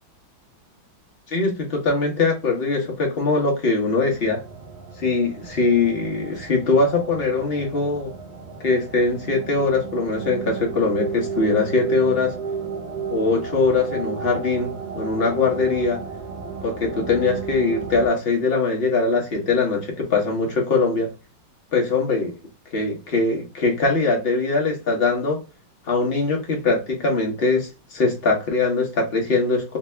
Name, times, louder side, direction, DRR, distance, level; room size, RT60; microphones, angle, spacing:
voice 1, 1.3-4.4 5.0-8.1 8.6-12.3 13.1-16.0 16.6-21.1 21.7-22.3 22.7-25.4 25.9-29.8, left 3 dB, 35° left, 1.0 m, -22 dB
sound 1, 4.1-18.1, right 6 dB, 55° right, 1.5 m, -33 dB
3.5 x 2.6 x 3.3 m
omnidirectional pair, 2.3 m